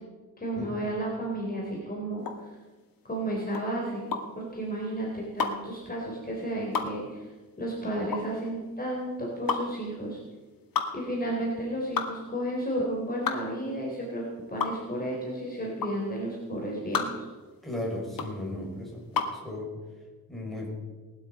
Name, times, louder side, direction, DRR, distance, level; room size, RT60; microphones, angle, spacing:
voice 1, 0.4-2.2 3.0-4.1 4.4-7.3 7.6-10.2 10.9-14.2 14.5-17.3, right 1 dB, 25° left, -3 dB, 3.7 m, -32 dB
sound 1, 2.2-19.4, left 5 dB, 65° left, 2.0 m, -33 dB
voice 2, 17.6-19.0 19.4-19.7 20.3-20.7, left 1 dB, ahead, -3 dB, 5.6 m, -35 dB
19.0 x 12.0 x 5.3 m, 1.3 s
wide cardioid pair, 120°, 36 cm